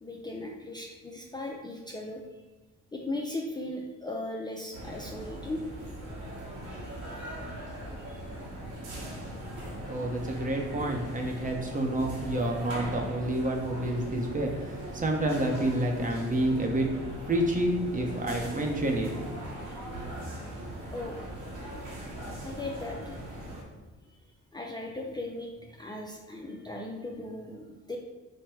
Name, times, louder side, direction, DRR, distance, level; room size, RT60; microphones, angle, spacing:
voice 1, 0.0-2.2 2.9-5.6 6.8-7.2 8.0-8.2 19.6-19.8 20.9-21.3 22.4-23.2 24.1-24.2 24.5-28.0, left 2 dB, 15° left, -1 dB, 0.4 m, -38 dB
sound 1, 4.7-23.6, right 1 dB, 85° right, 1.2 m, -40 dB
voice 2, 9.9-16.9 17.3-19.1, right 1 dB, 25° right, 2 dB, 0.8 m, -29 dB
4.8 x 2.2 x 4.5 m, 1.2 s
cardioid pair, 90°, 30 cm